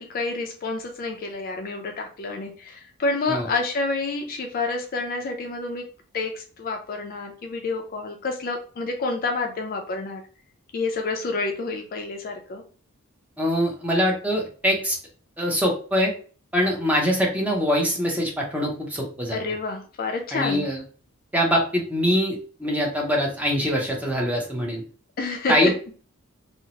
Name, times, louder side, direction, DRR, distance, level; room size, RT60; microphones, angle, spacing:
voice 1, 0.0-5.9 6.1-10.2 10.7-12.6 19.3-20.7 25.2-25.7, left 3 dB, 40° left, 3 dB, 0.4 m, -29 dB
voice 2, 13.4-15.0 15.4-16.1 16.5-19.4 20.3-20.8 21.3-24.8 25.5-25.9, equal, 5° right, -1 dB, 0.6 m, -23 dB
2.7 x 2.0 x 2.8 m, 0.40 s
head